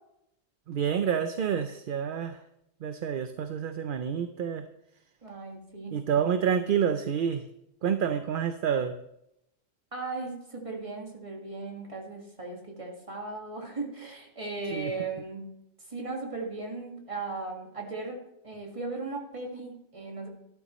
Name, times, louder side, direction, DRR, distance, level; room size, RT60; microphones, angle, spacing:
voice 1, 0.7-2.4 2.8-4.7 5.9-7.4 7.8-9.0 14.7-14.9, right 8 dB, 55° right, 9 dB, 0.7 m, -28 dB
voice 2, 5.2-6.0 9.9-15.5 15.9-18.2 18.4-20.3, right 3 dB, 30° right, 0 dB, 1.9 m, -37 dB
12.0 x 12.0 x 3.1 m, 0.82 s
omnidirectional pair, 1.2 m